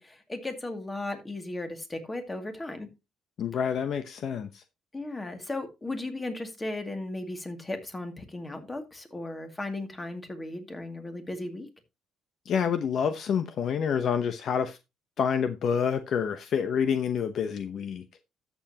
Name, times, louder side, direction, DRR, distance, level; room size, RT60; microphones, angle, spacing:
voice 1, 0.0-2.9 4.9-11.7, left 2 dB, 20° left, 2.2 m, -36 dB
voice 2, 3.4-4.6 12.5-14.8 15.2-18.0, left 7 dB, 60° left, 0.8 m, -28 dB
13.0 x 7.1 x 2.8 m
cardioid pair, 95°, 0 cm